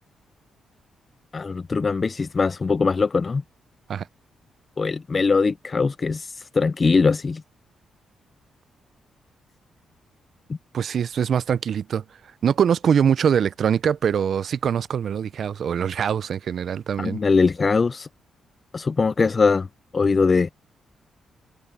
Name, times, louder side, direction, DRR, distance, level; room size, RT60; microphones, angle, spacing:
voice 1, 1.3-3.4 4.8-7.4 10.5-10.6 17.0-18.1 18.7-19.7 19.9-20.5, left 4 dB, 30° left, 0.4 m, -21 dB
voice 2, 10.7-12.0 12.4-17.2, right 8 dB, 55° right, 0.5 m, -23 dB
cardioid pair, 120°, 0 cm